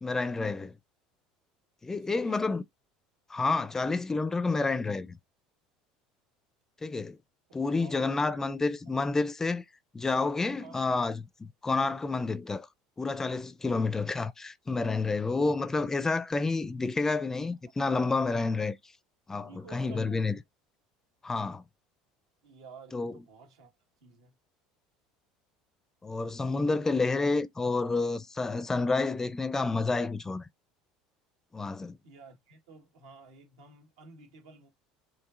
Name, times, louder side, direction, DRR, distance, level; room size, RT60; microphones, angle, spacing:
voice 1, 0.0-0.7 1.8-2.6 3.3-5.2 6.8-7.2 7.5-9.6 9.9-12.7 13.0-18.7 19.3-20.4 21.2-21.6 22.9-23.1 26.0-30.5 31.5-32.0, left 3 dB, 20° left, 0.4 m, -29 dB
voice 2, 2.0-2.6 7.5-8.4 8.9-9.2 10.6-10.8 19.4-20.4 22.4-23.7 24.0-24.3 32.0-34.7, right 4 dB, 85° right, 1.5 m, -52 dB
4.8 x 2.6 x 2.5 m
supercardioid pair, 85°, 3 cm